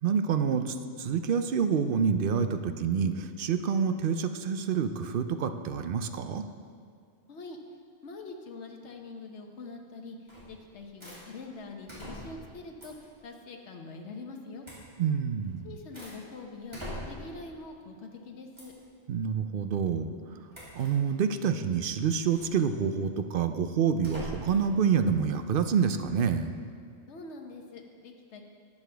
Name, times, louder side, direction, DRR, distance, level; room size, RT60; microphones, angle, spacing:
voice 1, 0.0-6.4 15.0-15.7 19.1-20.5 20.7-26.6, right 6 dB, 60° right, 8 dB, 0.7 m, -27 dB
voice 2, 8.0-14.7 15.6-18.7 27.1-28.4, left 3 dB, 70° left, 3 dB, 1.3 m, -44 dB
sound 1, 10.3-10.6 11.0-11.2 11.9-12.5 12.8-13.1 14.6-14.9 15.4-16.2 16.7-17.4 18.5-18.8 20.5-21.0 22.2-22.5 24.0-24.7, equal, 25° right, 2.7 m, -42 dB
12.5 x 9.5 x 3.4 m, 2.1 s
omnidirectional pair, 1.2 m